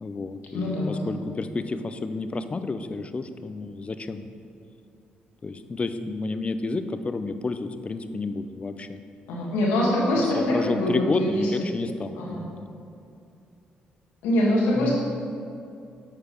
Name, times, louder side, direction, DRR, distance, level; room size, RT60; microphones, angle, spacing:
voice 1, 0.0-4.3 5.4-9.0 10.4-12.7 14.8-15.0, left 3 dB, 35° left, 10 dB, 0.5 m, -30 dB
voice 2, 0.5-1.0 9.3-11.5 12.1-12.4 14.2-15.0, left 1 dB, 90° left, -4 dB, 1.6 m, -24 dB
8.0 x 4.7 x 5.2 m, 2.5 s
supercardioid pair, 60°, 4 cm